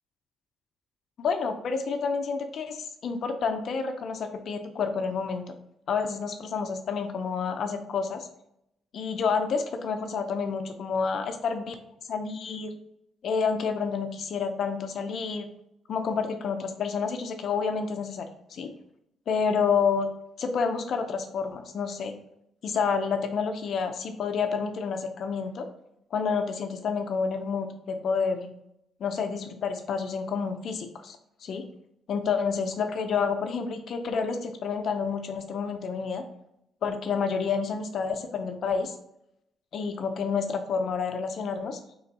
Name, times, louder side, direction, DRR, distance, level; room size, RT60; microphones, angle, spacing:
voice 1, 1.2-5.4 5.9-8.3 8.9-11.8 12.1-12.7 13.2-15.5 15.9-18.7 19.3-20.1 20.4-22.1 22.6-25.7 26.1-28.5 29.0-31.7 32.1-36.2 36.8-38.9 39.7-41.8, left 5 dB, 60° left, 6 dB, 0.5 m, -29 dB
3.8 x 3.3 x 4.0 m, 0.80 s
cardioid pair, 90°, 0 cm